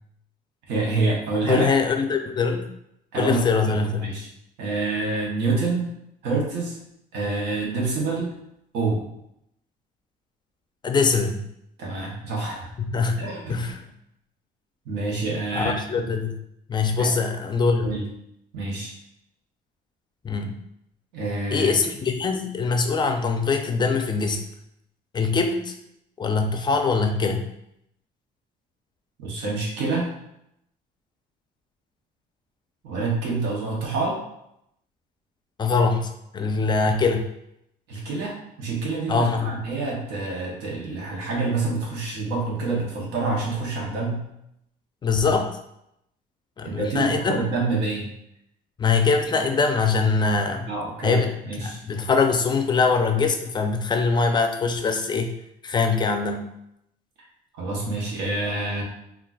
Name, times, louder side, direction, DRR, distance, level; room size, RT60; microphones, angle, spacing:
voice 1, 0.7-1.7 3.1-4.3 4.6-5.9 6.2-6.8 7.1-8.3 8.7-9.1 11.8-12.7 13.2-13.6 14.9-16.1 17.0-17.1 17.8-18.1 18.5-19.0 21.1-21.8 29.2-30.1 32.8-34.2 37.9-44.2 46.6-48.1 50.7-51.8 57.5-58.8, right 3 dB, 85° right, -2 dB, 0.9 m, -27 dB
voice 2, 1.5-2.7 3.2-4.1 10.8-11.5 12.8-13.2 13.5-13.8 15.5-16.3 16.7-18.0 20.2-20.5 21.5-24.4 25.1-25.7 26.2-27.4 35.6-37.2 39.1-39.5 45.0-45.5 46.6-47.4 48.8-50.7 51.0-51.3 51.6-55.3 55.6-56.4, left 4 dB, 25° left, 5 dB, 0.4 m, -23 dB
3.8 x 2.3 x 2.3 m, 0.78 s
cardioid pair, 110°, 17 cm